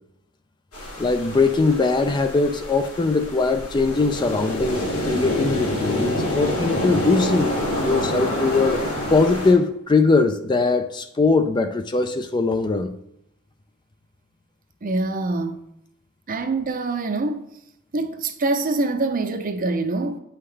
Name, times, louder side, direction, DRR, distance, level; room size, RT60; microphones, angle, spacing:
sound 1, 0.7-9.5, left 1 dB, 85° left, 2.6 m, -27 dB
voice 1, 1.0-7.5 7.8-8.8 9.1-12.9, left 3 dB, 20° left, 0.3 m, -21 dB
voice 2, 14.8-15.6 16.3-17.5 17.9-20.2, right 3 dB, 40° right, 0.6 m, -25 dB
8.3 x 5.7 x 3.3 m
head